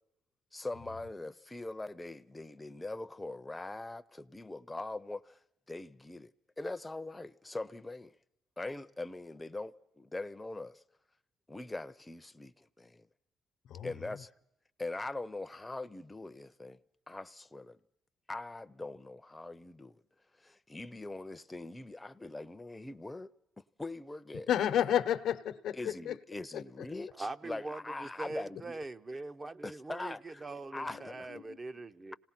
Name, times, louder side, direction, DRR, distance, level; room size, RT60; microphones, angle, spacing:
voice 1, 0.5-5.4 5.7-6.3 6.6-8.2 8.6-10.8 11.5-13.1 13.8-14.3 14.8-16.8 17.1-17.8 18.3-20.0 20.4-23.3 23.8-24.5 25.7-28.8 29.6-30.4 30.7-31.3, left 2 dB, 15° left, 0.7 m, -42 dB
voice 2, 24.5-25.8 26.1-26.2 26.5-26.6 30.9-31.0 31.3-31.6, left 10 dB, 75° left, 0.9 m, -31 dB
voice 3, 27.2-32.2, right 2 dB, 30° right, 0.8 m, -42 dB
26.5 x 18.5 x 5.9 m
cardioid pair, 90°, 0 cm